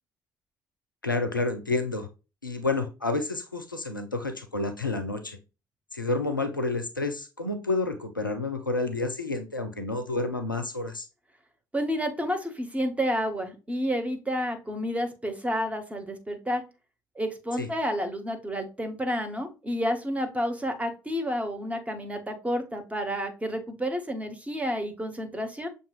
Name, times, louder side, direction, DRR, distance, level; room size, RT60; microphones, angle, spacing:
voice 1, 1.0-2.1 2.4-5.4 5.9-11.1 17.6-17.7, left 3 dB, 90° left, 8 dB, 0.4 m, -29 dB
voice 2, 11.7-16.6 17.1-25.7, equal, 10° right, 5 dB, 1.0 m, -30 dB
6.5 x 2.6 x 2.3 m, 0.30 s
figure-of-eight pair, 50°, 11 cm